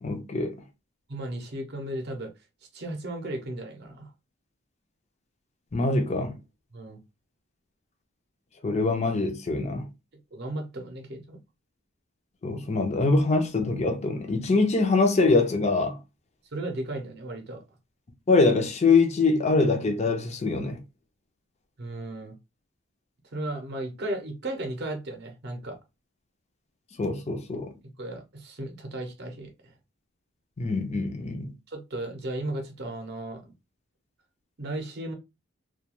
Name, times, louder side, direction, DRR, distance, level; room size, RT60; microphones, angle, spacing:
voice 1, 0.0-0.6 5.7-6.4 8.6-9.9 12.4-16.0 18.3-20.8 27.0-27.7 30.6-31.5, left 3 dB, 30° left, 0.5 m, -24 dB
voice 2, 1.1-2.3 2.7-4.1 6.7-7.0 10.3-11.4 16.5-17.6 21.8-22.3 23.3-25.8 27.8-29.7 31.7-33.4 34.6-35.1, right 1 dB, 50° right, 0.6 m, -35 dB
2.3 x 2.3 x 2.9 m
head